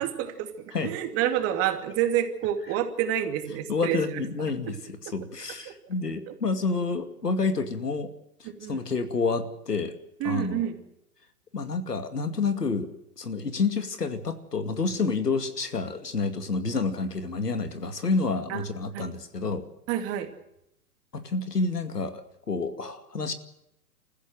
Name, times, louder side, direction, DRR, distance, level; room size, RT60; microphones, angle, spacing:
voice 1, 0.0-4.1 6.3-6.4 8.4-8.8 10.2-10.8 18.5-18.7 18.9-19.1 19.9-20.3, right 10 dB, 30° right, 6 dB, 2.6 m, -28 dB
voice 2, 3.7-8.1 8.4-9.9 10.2-10.7 11.5-12.9 13.2-19.7 21.1-23.3, left 4 dB, 90° left, 8 dB, 2.4 m, -29 dB
29.0 x 15.0 x 6.3 m, 0.83 s
hypercardioid pair, 120°, 46 cm